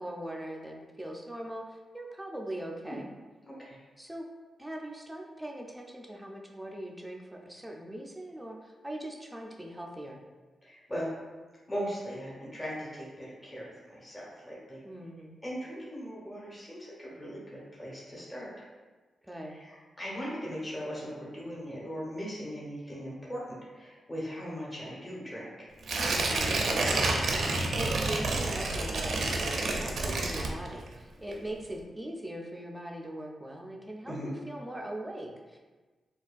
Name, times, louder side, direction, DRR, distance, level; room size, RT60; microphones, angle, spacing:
voice 1, 0.0-3.1 4.0-4.3 4.6-10.2 14.8-15.4 19.2-19.6 26.2-35.6, right 1 dB, 5° right, 0 dB, 0.4 m, -41 dB
voice 2, 3.5-3.8 10.6-11.1 11.7-14.8 15.4-18.6 19.4-25.7 34.0-34.3, equal, 20° left, -7 dB, 1.2 m, -39 dB
Tearing, 25.8-31.0 31.3-31.4, right 2 dB, 70° right, 0.5 m, -29 dB
4.2 x 2.3 x 2.5 m, 1.3 s
cardioid pair, 95°, 0 cm